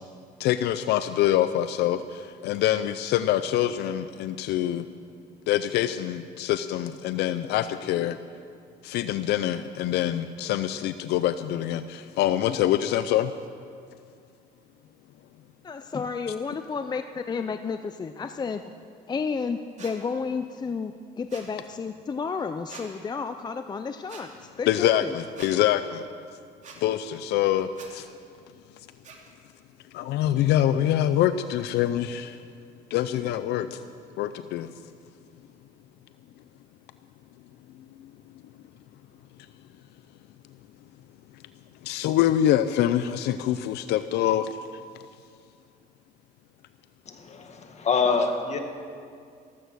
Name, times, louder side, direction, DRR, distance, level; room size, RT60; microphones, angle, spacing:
voice 1, 0.4-4.9 5.5-8.2 8.8-13.3 24.7-26.0 26.8-28.1 29.9-32.4 32.9-33.8 34.2-34.7 38.0-38.1 41.8-44.6, left 12 dB, 80° left, 12 dB, 0.5 m, -25 dB
voice 2, 15.6-18.7 19.1-25.1, left 5 dB, 25° left, 9 dB, 0.5 m, -32 dB
sound 1, 19.8-19.9 21.3-21.5 22.7-22.9 24.1-24.2 25.4-25.5 26.6-26.8 27.7-27.9 29.0-29.2, right 5 dB, 45° right, 2.7 m, -44 dB
voice 3, 47.1-48.6, left 5 dB, 40° left, 5 dB, 1.9 m, -26 dB
15.0 x 14.5 x 6.3 m, 2.3 s
cardioid pair, 110°, 17 cm